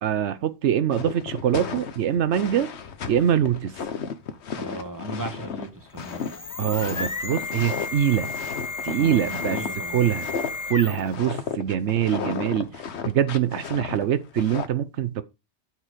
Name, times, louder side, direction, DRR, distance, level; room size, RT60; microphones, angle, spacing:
voice 1, 0.0-2.7 3.1-3.7 6.6-8.3 8.8-9.6 9.9-10.3 10.7-15.2, right 10 dB, 80° right, 1.0 m, -24 dB
sound 1, 0.9-9.7 10.1-10.6 10.9-14.7, left 6 dB, 70° left, 1.2 m, -33 dB
voice 2, 4.6-6.2 9.0-10.1, right 1 dB, 15° right, 1.9 m, -36 dB
sound 2, 5.9-11.2, left 3 dB, 25° left, 0.4 m, -33 dB
12.5 x 4.5 x 5.0 m
omnidirectional pair, 1.2 m